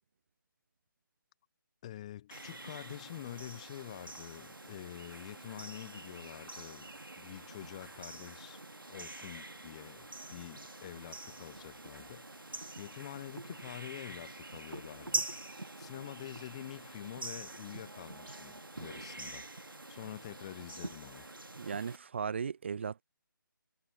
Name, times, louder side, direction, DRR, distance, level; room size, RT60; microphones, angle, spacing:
voice 1, 1.8-8.6 8.9-15.3 15.8-19.5 19.9-21.3, left 12 dB, 20° left, 0.8 m, -47 dB
sound 1, 2.3-22.0, right 2 dB, 75° right, 1.9 m, -45 dB
voice 2, 21.6-23.0, right 6 dB, 35° right, 0.7 m, -36 dB
figure-of-eight pair, 150°, 11 cm